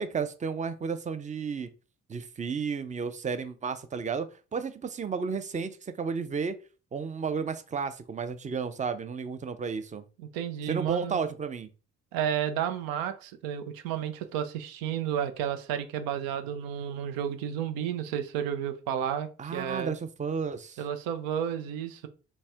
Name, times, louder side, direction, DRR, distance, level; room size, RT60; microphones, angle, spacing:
voice 1, 0.0-1.7 2.1-6.6 6.9-10.0 10.7-11.7 19.4-20.8, right 5 dB, 20° right, 0.5 m, -32 dB
voice 2, 10.2-11.2 12.1-19.9 20.8-22.1, right 9 dB, 85° right, 0.5 m, -32 dB
4.1 x 2.2 x 3.5 m
hypercardioid pair, 50°, 34 cm